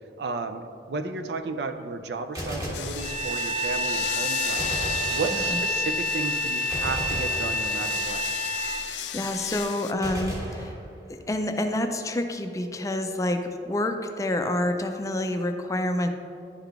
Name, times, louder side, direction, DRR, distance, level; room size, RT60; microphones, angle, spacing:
voice 1, 0.2-8.2, right 4 dB, 65° right, 7 dB, 0.4 m, -33 dB
Gunshot gunfire, 2.4-3.6 4.6-5.8 6.7-8.1 10.0-11.4, equal, 20° right, 1.4 m, -35 dB
sound 1, 2.7-9.9, left 11 dB, 90° left, 0.4 m, -35 dB
Bowed string instrument, 3.0-8.9, equal, 50° right, 1.6 m, -28 dB
voice 2, 8.8-10.7 11.3-16.1, left 1 dB, 20° left, 6 dB, 0.4 m, -28 dB
11.0 x 3.8 x 3.5 m, 2.6 s
head